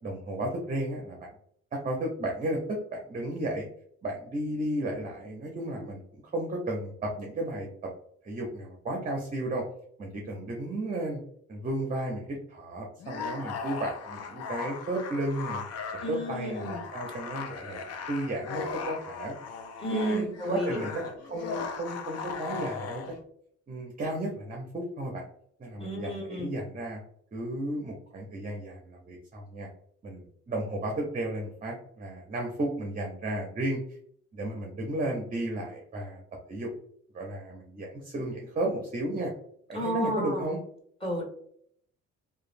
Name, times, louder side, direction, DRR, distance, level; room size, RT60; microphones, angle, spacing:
voice 1, 0.0-1.2 1.7-3.7 4.0-7.7 8.2-9.6 10.0-11.2 11.5-15.6 16.1-19.4 19.9-21.0 21.3-23.2 23.7-25.3 25.6-27.0 27.3-29.7 30.0-33.8 34.3-36.2 36.5-36.7 37.1-39.3 39.7-40.6, right 1 dB, 25° right, 1 dB, 0.6 m, -33 dB
sound 1, 13.0-23.2, left 5 dB, 55° left, 0.5 m, -38 dB
voice 2, 16.0-16.8 19.8-20.8 25.8-26.5 39.7-40.4 41.0-41.2, left 1 dB, 20° left, -3 dB, 1.5 m, -33 dB
3.0 x 2.2 x 2.5 m, 0.64 s
cardioid pair, 90°, 30 cm